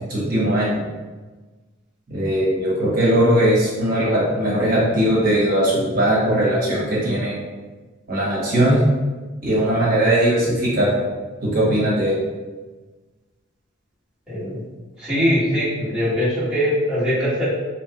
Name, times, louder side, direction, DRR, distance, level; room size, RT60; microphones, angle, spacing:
voice 1, 0.1-0.8 2.1-7.3 8.1-8.8 9.4-10.9 11.4-12.1, right 1 dB, 40° right, -6 dB, 1.0 m, -19 dB
voice 2, 14.3-14.6 15.0-17.4, equal, 5° right, -13 dB, 1.1 m, -21 dB
2.9 x 2.3 x 2.9 m, 1.3 s
head